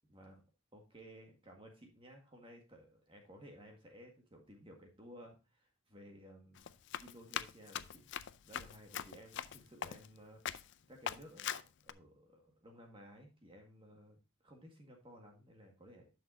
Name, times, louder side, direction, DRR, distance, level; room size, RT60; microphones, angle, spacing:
voice 1, 0.1-0.4 0.7-6.7 7.0-8.1 8.4-16.1, equal, 25° right, 1 dB, 1.8 m, -57 dB
Run, 6.6-10.2 10.5-10.7 11.1-11.9, left 9 dB, 55° left, 0.4 m, -42 dB
11.0 x 6.3 x 2.7 m, 0.30 s
head